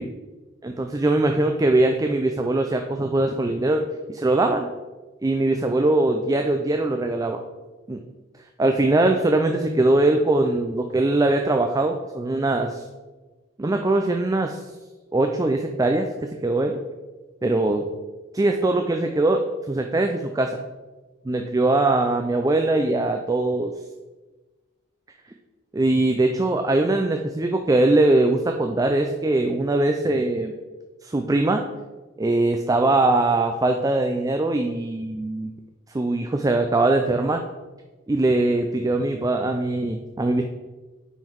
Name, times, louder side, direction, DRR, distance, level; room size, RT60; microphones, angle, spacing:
voice 1, 0.6-3.8 4.1-4.7 5.2-7.4 7.9-8.0 8.6-12.8 13.6-14.6 15.1-16.8 17.4-17.9 18.3-20.5 21.3-23.7 25.7-30.5 31.0-31.6 32.2-35.5 35.9-37.4 38.1-40.4, right 2 dB, 15° right, 4 dB, 0.3 m, -21 dB
9.4 x 3.8 x 4.6 m, 1.2 s
head